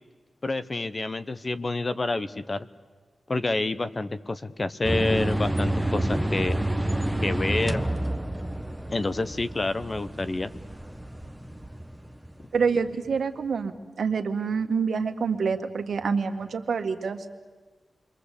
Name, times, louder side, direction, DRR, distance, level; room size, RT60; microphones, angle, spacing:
voice 1, 0.4-2.7 3.3-6.6 7.2-7.8 8.9-10.5, left 2 dB, 35° left, 13 dB, 1.0 m, -28 dB
sound 1, 4.8-12.9, right 1 dB, 5° right, 1.2 m, -29 dB
voice 2, 12.5-17.2, right 5 dB, 80° right, 7 dB, 1.8 m, -27 dB
29.0 x 23.0 x 8.4 m, 1.3 s
wide cardioid pair, 125°, 0 cm